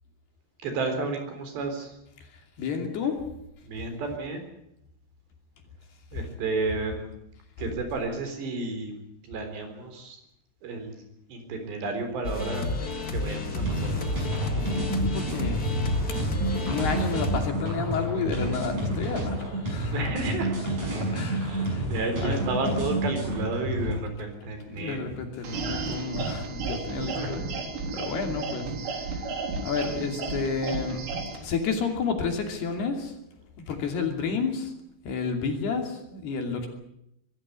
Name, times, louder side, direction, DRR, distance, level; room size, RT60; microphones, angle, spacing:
voice 1, 0.6-1.9 3.6-4.5 6.1-7.1 7.6-9.0 9.2-10.2 10.6-11.0 11.3-12.7 13.1-14.1 19.9-20.6 21.3-25.0 27.0-27.4, right 3 dB, 60° right, 6 dB, 5.9 m, -32 dB
voice 2, 2.3-3.2 14.9-15.6 16.3-20.0 21.1-21.9 22.2-22.4 24.6-27.5 27.9-29.3 29.6-31.0 31.3-33.1 33.6-34.7 35.0-36.7, left 5 dB, 60° left, 4 dB, 4.5 m, -31 dB
sound 1, 12.2-17.4, left 1 dB, 85° left, 0.8 m, -31 dB
sound 2, 13.6-23.9, right 1 dB, 35° right, 7.3 m, -30 dB
sound 3, 25.4-31.4, right 4 dB, 90° right, 6.3 m, -33 dB
23.0 x 14.5 x 9.8 m, 0.80 s
omnidirectional pair, 5.6 m